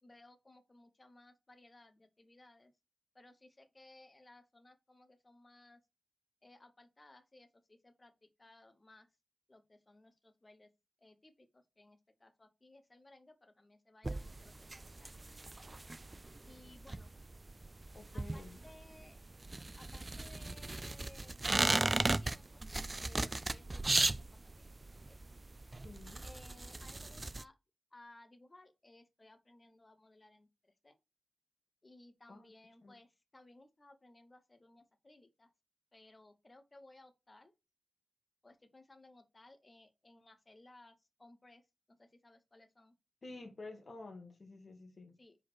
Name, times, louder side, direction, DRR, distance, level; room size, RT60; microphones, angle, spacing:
voice 1, 0.0-2.7 3.1-5.8 6.4-9.1 9.5-10.7 11.0-15.5 16.4-17.1 18.1-19.2 19.7-22.7 23.0-25.2 26.2-27.5 27.9-31.0 31.8-35.5 35.9-37.5 38.4-42.9 45.2-45.4, left 2 dB, 30° left, 1.0 m, -61 dB
sound 1, 14.0-27.4, right 2 dB, 30° right, 0.3 m, -37 dB
voice 2, 17.9-18.6 25.7-26.2 32.3-32.5 32.8-32.9 43.2-45.2, left 3 dB, 50° left, 1.6 m, -51 dB
5.1 x 4.1 x 6.0 m
wide cardioid pair, 110°, 0 cm